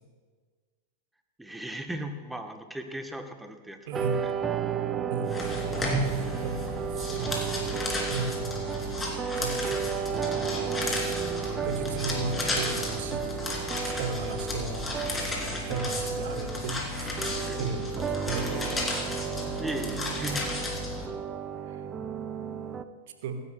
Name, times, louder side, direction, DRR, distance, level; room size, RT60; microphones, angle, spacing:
voice 1, 1.4-4.3 17.5-17.8 19.6-20.5, right 1 dB, 5° right, 6 dB, 1.0 m, -37 dB
sound 1, 3.9-22.8, right 8 dB, 20° right, 0.6 m, -33 dB
voice 2, 3.9-4.2 5.1-5.5 6.1-6.6 6.9-7.7 8.1-8.5 9.3-9.9 11.4-13.2 13.8-14.9 15.7-17.9 18.2-19.0 21.7-21.8 23.2-23.4, right 4 dB, 55° right, 7 dB, 1.2 m, -35 dB
sound 2, 5.3-21.1, left 2 dB, 10° left, 2.9 m, -33 dB
25.5 x 10.5 x 2.3 m, 1.5 s
figure-of-eight pair, 90°, 0 cm